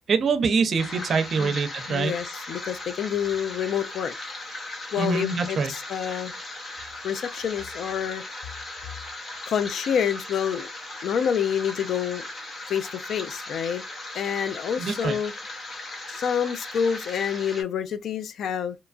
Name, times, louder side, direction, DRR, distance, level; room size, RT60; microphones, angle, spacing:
voice 1, 0.1-2.1 5.0-5.7 14.8-15.1, right 5 dB, 55° right, 0.6 m, -24 dB
sound 1, 0.8-17.6, left 2 dB, 45° left, 0.8 m, -38 dB
voice 2, 1.9-4.1 4.9-6.3 7.0-8.2 9.5-10.7 11.0-12.3 12.7-13.8 14.1-15.3 16.1-18.8, left 8 dB, 65° left, 0.3 m, -28 dB
2.8 x 2.2 x 2.4 m
cardioid pair, 90°, 0 cm